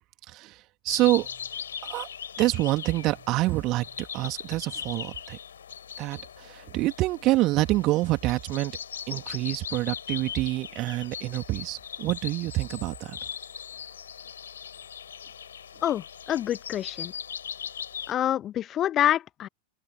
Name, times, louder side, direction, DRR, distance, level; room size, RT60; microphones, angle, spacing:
voice 1, 0.3-1.5 1.8-2.1 2.4-5.4 6.0-8.7 9.1-13.2, right 18 dB, 40° right, 3.3 m, -27 dB
sound 1, 0.9-18.1, left 8 dB, 65° left, 5.0 m, -39 dB
voice 2, 15.8-17.1 18.1-19.5, left 11 dB, 30° left, 0.7 m, -27 dB
figure-of-eight pair, 90°, 0 cm